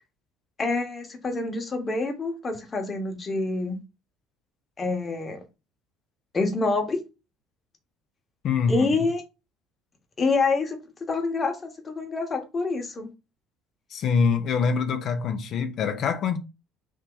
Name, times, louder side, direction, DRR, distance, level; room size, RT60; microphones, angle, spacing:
voice 1, 0.6-3.8 4.8-5.4 6.3-7.0 8.7-9.2 10.2-10.8 11.1-13.1, left 3 dB, 30° left, 1.3 m, -26 dB
voice 2, 8.4-8.9 13.9-16.4, left 5 dB, 55° left, 0.8 m, -24 dB
3.6 x 2.7 x 3.9 m
hypercardioid pair, 60°, 0 cm